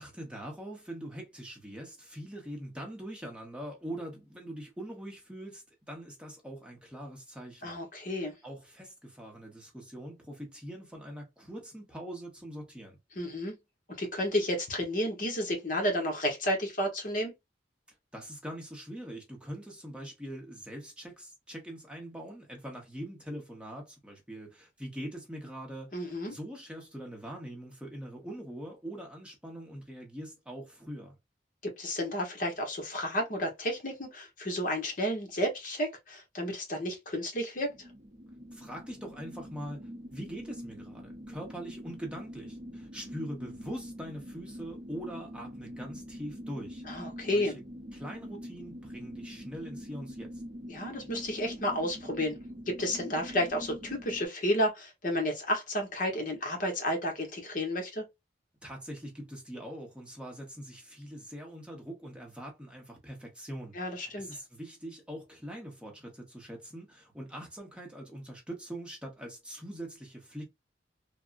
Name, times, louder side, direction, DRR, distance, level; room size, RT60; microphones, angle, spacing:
voice 1, 0.0-7.8 8.4-13.0 18.1-31.2 38.5-46.8 47.3-47.6 47.9-50.4 58.6-70.4, right 1 dB, 5° right, 0.8 m, -43 dB
voice 2, 7.6-8.3 13.2-13.6 13.9-17.3 25.9-26.3 31.6-37.7 46.9-47.5 50.7-52.4 52.7-58.0 63.7-64.3, equal, 50° left, 1.0 m, -31 dB
sound 1, 37.6-54.3, equal, 45° right, 0.6 m, -45 dB
3.4 x 2.1 x 2.4 m
head